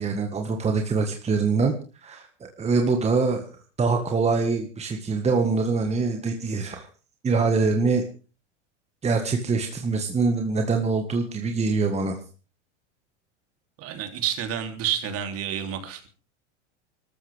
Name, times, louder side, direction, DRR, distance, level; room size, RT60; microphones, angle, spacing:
voice 1, 0.0-1.7 2.0-3.5 3.8-6.9 7.2-8.0 9.0-12.2, right 4 dB, 20° right, 4 dB, 1.8 m, -24 dB
voice 2, 13.8-16.1, right 9 dB, 40° right, 6 dB, 3.4 m, -29 dB
24.5 x 13.5 x 3.6 m, 0.35 s
hypercardioid pair, 110°, 35 cm